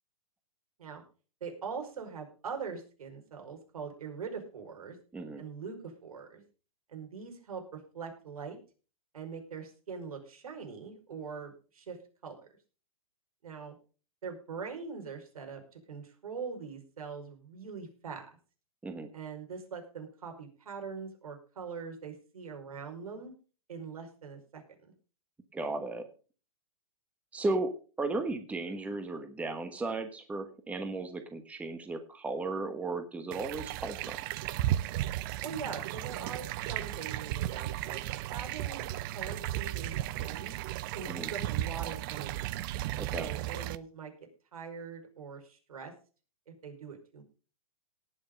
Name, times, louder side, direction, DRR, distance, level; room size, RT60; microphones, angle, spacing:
voice 1, 1.4-5.0 5.4-6.4 6.9-8.6 9.1-12.5 13.4-13.8 14.2-18.3 19.1-23.3 23.7-24.9 35.4-38.9 39.1-40.5 40.9-42.3 43.1-44.1 44.5-45.9 46.5-47.2, right 5 dB, 80° right, 4 dB, 5.0 m, -42 dB
voice 2, 5.1-5.4 18.8-19.1 25.5-26.1 27.3-27.7 28.0-34.2 41.1-41.3 43.0-43.3, right 2 dB, 5° right, 8 dB, 1.2 m, -35 dB
sound 1, 33.3-43.8, right 14 dB, 40° right, 0.6 m, -35 dB
18.5 x 6.6 x 5.2 m, 0.37 s
hypercardioid pair, 145°, 18 cm